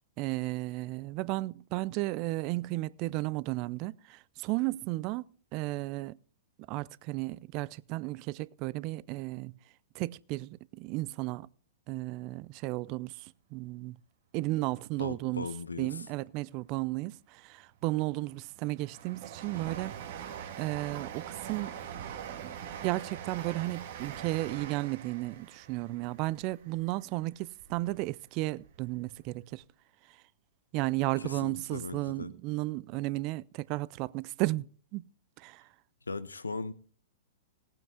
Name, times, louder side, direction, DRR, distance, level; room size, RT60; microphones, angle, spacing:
voice 1, 0.2-6.2 6.7-9.5 9.9-11.5 11.9-14.0 14.3-15.5 15.8-20.0 20.6-21.8 22.3-22.6 22.8-29.6 30.1-30.2 30.7-34.7 34.9-35.0 35.4-35.7, right 20 dB, 40° right, 0.5 m, -34 dB
voice 2, 15.0-16.0 31.2-32.3 36.1-36.7, left 3 dB, 85° left, 1.0 m, -38 dB
Train, 17.8-28.0 28.4-29.3 29.6-29.7, right 9 dB, 55° right, 1.8 m, -43 dB
18.5 x 9.0 x 3.7 m
hypercardioid pair, 110°, 0 cm